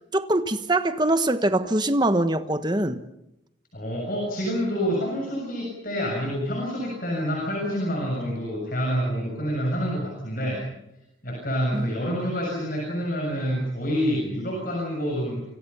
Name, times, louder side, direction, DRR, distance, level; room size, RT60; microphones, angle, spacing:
voice 1, 0.1-3.0 11.7-11.9, right 1 dB, 20° right, 1.3 m, -23 dB
voice 2, 3.7-10.6 11.2-15.4, equal, 45° left, 7.3 m, -27 dB
29.0 x 26.5 x 5.7 m
head